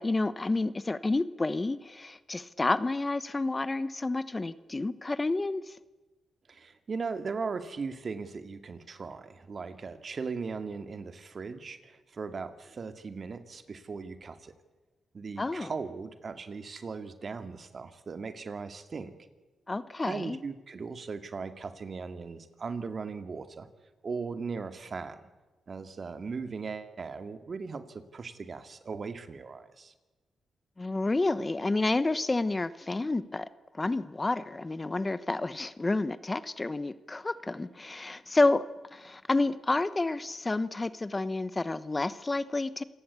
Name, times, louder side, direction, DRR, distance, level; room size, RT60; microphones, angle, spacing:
voice 1, 0.0-5.7 15.4-15.7 19.7-20.4 30.8-33.5 33.8-38.6 38.9-42.8, left 2 dB, 25° left, 15 dB, 1.0 m, -29 dB
voice 2, 6.5-14.5 15.1-19.1 20.0-23.7 24.0-25.2 25.7-29.9, right 4 dB, 50° right, 9 dB, 2.3 m, -38 dB
27.5 x 18.5 x 8.3 m, 1.2 s
cardioid pair, 75°, 0 cm